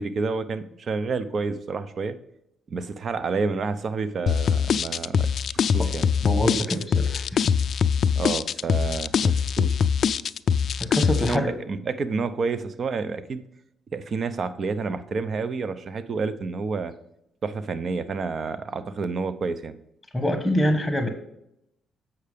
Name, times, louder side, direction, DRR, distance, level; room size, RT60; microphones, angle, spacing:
voice 1, 0.0-2.2 2.7-6.1 8.1-9.8 11.3-11.4 11.7-13.4 13.9-16.9 17.4-19.7, right 4 dB, 50° right, 13 dB, 0.6 m, -29 dB
sound 1, 4.3-11.4, left 7 dB, 60° left, 0.3 m, -23 dB
voice 2, 6.2-7.4 10.8-11.5 20.1-21.1, equal, 5° left, 6 dB, 1.1 m, -25 dB
8.0 x 5.7 x 5.0 m, 0.78 s
cardioid pair, 90°, 0 cm